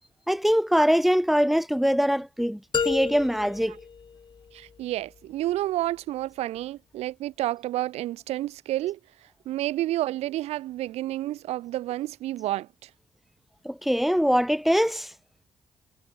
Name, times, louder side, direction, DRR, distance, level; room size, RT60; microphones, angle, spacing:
voice 1, 0.3-3.8 13.6-15.1, equal, ahead, 1.4 m, -23 dB
sound 1, 2.7-4.8, left 6 dB, 45° left, 5.0 m, -31 dB
voice 2, 4.5-9.0 9.5-12.9, right 15 dB, 85° right, 2.2 m, -30 dB
supercardioid pair, 70°, 11 cm